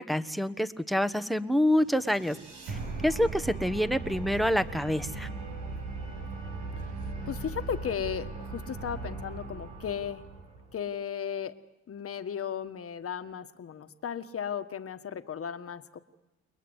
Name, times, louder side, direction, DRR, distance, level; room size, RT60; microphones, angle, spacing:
voice 1, 0.0-2.4 2.7-2.8 3.0-5.3, equal, ahead, 10 dB, 1.3 m, -27 dB
sound 1, 1.7-10.8, right 3 dB, 90° right, 6.4 m, -39 dB
voice 2, 7.3-10.2 10.7-11.6 11.9-16.0, left 8 dB, 50° left, 9 dB, 1.6 m, -35 dB
29.5 x 21.5 x 8.2 m, 1.0 s
cardioid pair, 90°, 30 cm